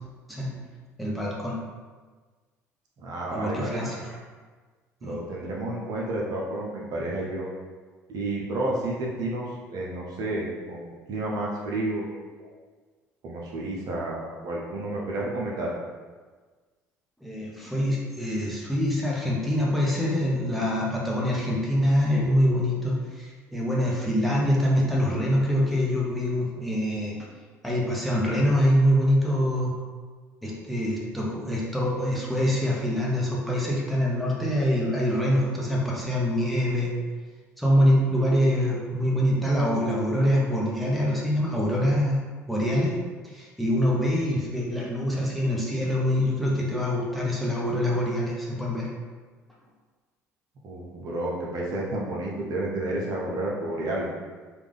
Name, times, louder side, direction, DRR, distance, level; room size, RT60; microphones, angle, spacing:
voice 1, 0.3-0.6 1.0-1.6 3.3-4.2 5.0-5.1 17.2-27.3 27.6-29.8 30.4-36.9 37.6-42.2 42.5-43.0 43.2-48.9, equal, ahead, -4 dB, 1.0 m, -25 dB
voice 2, 3.0-3.8 5.0-7.5 8.1-12.1 12.4-12.5 13.2-15.7 50.6-54.1, right 2 dB, 55° right, -3 dB, 0.7 m, -31 dB
3.4 x 2.5 x 3.4 m, 1.4 s
hypercardioid pair, 55°, 8 cm